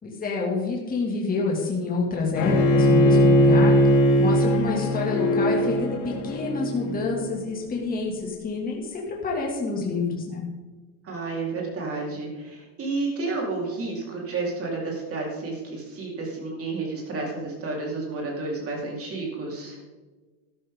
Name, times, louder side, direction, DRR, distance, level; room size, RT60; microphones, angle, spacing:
voice 1, 0.0-3.7 4.2-10.4, left 4 dB, 15° left, -2 dB, 2.5 m, -28 dB
Bowed string instrument, 2.3-7.4, equal, 65° left, 3.7 m, -20 dB
voice 2, 11.0-19.8, right 3 dB, 25° right, -2 dB, 4.4 m, -31 dB
13.0 x 12.5 x 3.9 m, 1.3 s
supercardioid pair, 135°, 49 cm